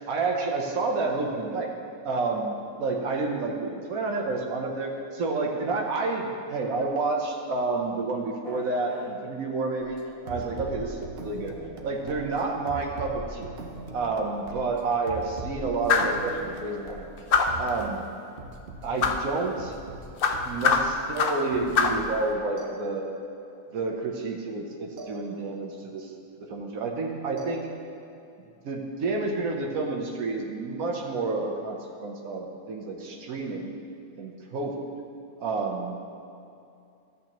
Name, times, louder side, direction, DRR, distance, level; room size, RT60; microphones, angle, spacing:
voice 1, 0.1-1.7 2.0-10.0 10.2-11.6 11.8-13.5 13.9-17.2 17.6-18.0 18.8-19.7 20.4-23.1 23.7-26.1 26.5-27.7 28.6-33.7 34.2-34.9 35.4-36.0, right 3 dB, 85° right, 1 dB, 1.3 m, -29 dB
sound 1, 8.4-9.1, equal, 85° left, 2.4 m, -40 dB
sound 2, 9.8-17.8 18.4-18.8 19.6-21.0 21.4-22.2 22.6-23.4 25.0-25.8 27.4-28.2, right 2 dB, 50° right, 1.0 m, -41 dB
sound 3, 15.9-16.2 17.3-17.7 19.0-19.3 20.2-21.5 21.8-22.1, left 5 dB, 55° left, 0.6 m, -23 dB
13.5 x 8.1 x 2.9 m, 2.6 s
omnidirectional pair, 1.4 m